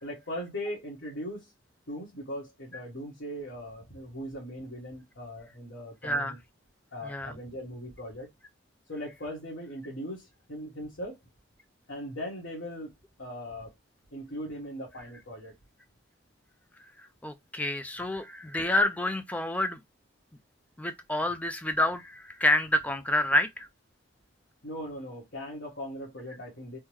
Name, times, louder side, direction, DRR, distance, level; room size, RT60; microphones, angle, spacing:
voice 1, 0.0-1.5 1.9-6.4 6.9-8.3 8.9-11.2 11.9-12.9 13.2-13.7 14.1-15.5 24.6-26.8, equal, 70° left, 1.2 m, -39 dB
voice 2, 6.0-6.3 7.0-7.3 17.2-19.8 20.8-23.7, left 1 dB, 10° left, 0.3 m, -28 dB
3.5 x 2.1 x 3.0 m
head